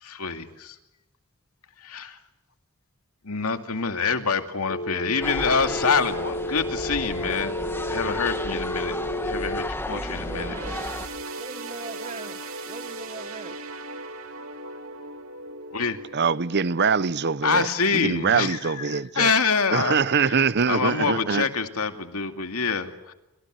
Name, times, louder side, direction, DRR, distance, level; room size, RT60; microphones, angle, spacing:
voice 1, 0.0-0.8 1.8-2.2 3.2-7.6 7.9-9.0 9.2-10.6 15.7-16.0 17.4-23.1, left 5 dB, 80° left, 2.4 m, -26 dB
Telephone, 4.7-9.7, left 1 dB, 60° left, 1.6 m, -31 dB
sound 1, 5.2-11.1, left 1 dB, 10° left, 2.3 m, -33 dB
voice 2, 9.9-11.1 11.4-12.4 12.7-13.6, right 3 dB, 30° right, 1.5 m, -40 dB
sound 2, 10.2-17.9 18.3-18.5 19.4-19.5, right 2 dB, 65° right, 3.5 m, -39 dB
voice 3, 16.1-19.3 19.7-21.5, right 5 dB, 50° right, 0.8 m, -23 dB
29.5 x 26.0 x 6.5 m
head